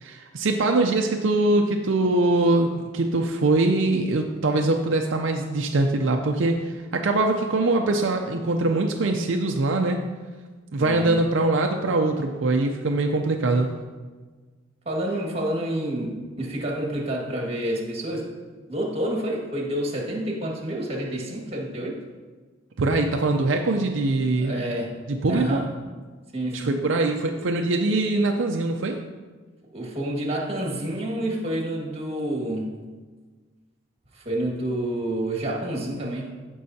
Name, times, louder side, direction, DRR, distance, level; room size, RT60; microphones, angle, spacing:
voice 1, 0.0-10.0 10.7-13.7 22.8-24.5 25.1-25.6 26.5-29.0, right 2 dB, 70° right, 3 dB, 0.5 m, -23 dB
voice 2, 10.8-11.1 14.8-18.3 18.7-22.0 24.4-25.0 25.3-25.7 26.3-26.8 29.7-32.7 34.1-36.3, right 1 dB, 30° right, -1 dB, 1.7 m, -28 dB
15.0 x 5.4 x 2.8 m, 1.4 s
head